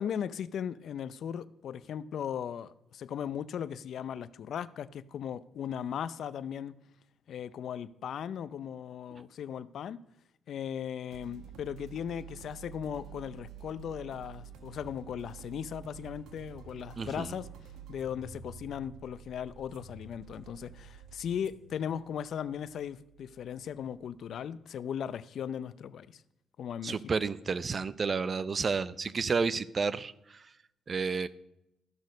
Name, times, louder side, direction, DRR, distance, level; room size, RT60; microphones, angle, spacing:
voice 1, 0.0-6.7 7.3-10.0 10.5-17.5 17.9-26.2 26.6-27.0, left 8 dB, 65° left, 0.5 m, -37 dB
sound 1, 11.1-24.5, right 8 dB, 80° right, 1.3 m, -50 dB
voice 2, 17.0-17.3 26.8-30.5 30.9-31.3, right 5 dB, 40° right, 0.6 m, -31 dB
13.5 x 6.3 x 5.2 m
cardioid pair, 90°, 0 cm